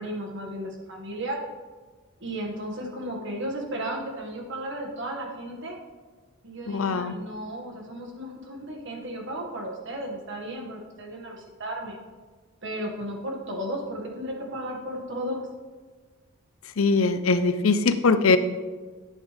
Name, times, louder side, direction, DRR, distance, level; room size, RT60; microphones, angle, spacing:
voice 1, 0.0-1.4 2.2-5.8 6.4-12.0 12.6-15.5, right 1 dB, 65° right, 1 dB, 1.9 m, -34 dB
voice 2, 6.7-7.1 16.8-18.4, left 4 dB, 75° left, 11 dB, 0.6 m, -21 dB
11.0 x 8.4 x 3.4 m, 1.4 s
head